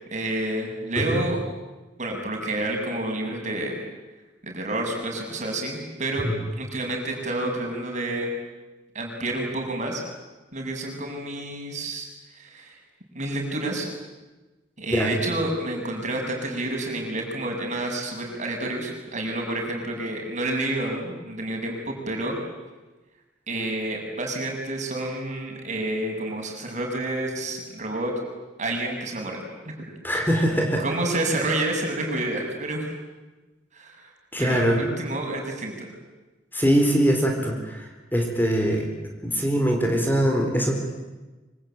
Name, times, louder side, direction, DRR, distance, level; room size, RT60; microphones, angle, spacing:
voice 1, 0.1-1.4 2.0-3.8 4.4-8.3 9.0-10.0 10.5-12.1 12.4-12.7 13.1-13.9 14.8-22.4 23.5-28.1 28.6-29.9 30.8-32.9 33.7-34.1 34.4-35.9, right 1 dB, 40° right, 2 dB, 6.9 m, -29 dB
voice 2, 30.0-30.8 34.3-34.8 36.5-38.9 39.2-40.7, equal, 10° left, 2 dB, 4.2 m, -22 dB
26.0 x 25.0 x 9.1 m, 1.2 s
head